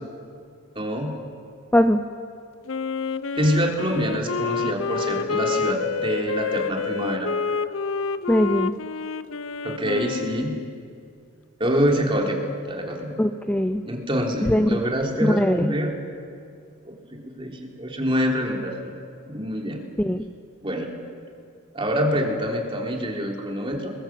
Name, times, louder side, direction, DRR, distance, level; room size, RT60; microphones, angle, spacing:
voice 1, 0.7-1.2 3.3-7.3 9.6-10.6 11.6-13.1 13.9-15.9 17.1-18.9 19.3-19.8 20.6-20.9 21.7-23.9, equal, 25° right, 0 dB, 3.4 m, -25 dB
Wind instrument woodwind instrument, 2.7-10.8, left 5 dB, 65° left, 0.6 m, -28 dB
voice 2, 8.3-8.7 13.2-13.8 14.4-14.8 15.2-15.7 20.0-20.3, equal, 5° left, 7 dB, 0.5 m, -20 dB
26.5 x 22.0 x 7.6 m, 2.4 s
head